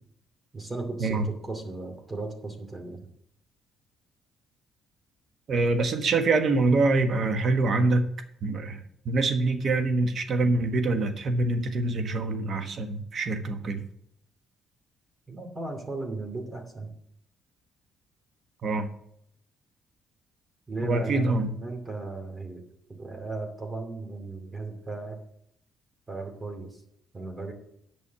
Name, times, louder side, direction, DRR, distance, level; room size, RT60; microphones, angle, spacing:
voice 1, 0.5-3.0 15.3-16.9 20.7-22.6 22.9-25.2 26.1-26.7 27.1-27.5, right 3 dB, 25° right, 4 dB, 2.5 m, -36 dB
voice 2, 5.5-8.1 8.4-13.8 18.6-18.9 20.8-21.5, right 3 dB, 55° right, 8 dB, 1.4 m, -25 dB
8.9 x 6.3 x 6.9 m, 0.71 s
cardioid pair, 85°, 0 cm